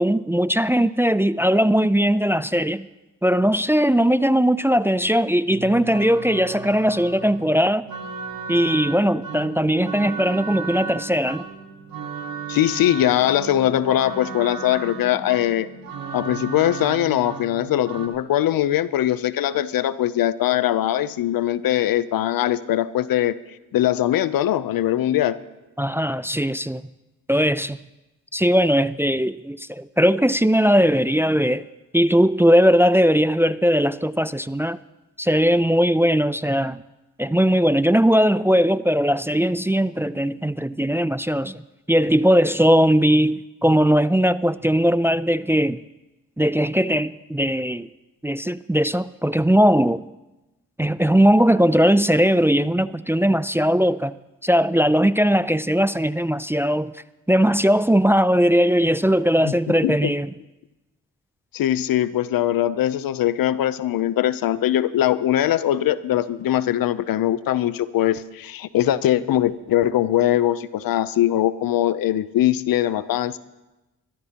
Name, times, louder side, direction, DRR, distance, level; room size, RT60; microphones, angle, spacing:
voice 1, 0.0-2.9 3.2-7.9 8.5-11.4 25.8-26.8 27.3-27.8 28.3-31.6 31.9-34.8 35.2-36.8 37.2-41.6 41.9-45.8 46.4-47.9 48.2-50.0 50.8-54.2 54.4-56.9 57.3-60.3, equal, 5° right, 0.4 m, -19 dB
sound 1, 5.5-18.1, right 5 dB, 85° right, 1.5 m, -35 dB
voice 2, 12.5-15.7 16.1-23.4 23.7-25.4 59.4-59.5 59.8-60.1 61.5-73.4, left 12 dB, 85° left, 0.6 m, -21 dB
22.5 x 14.0 x 2.9 m
supercardioid pair, 45°, 34 cm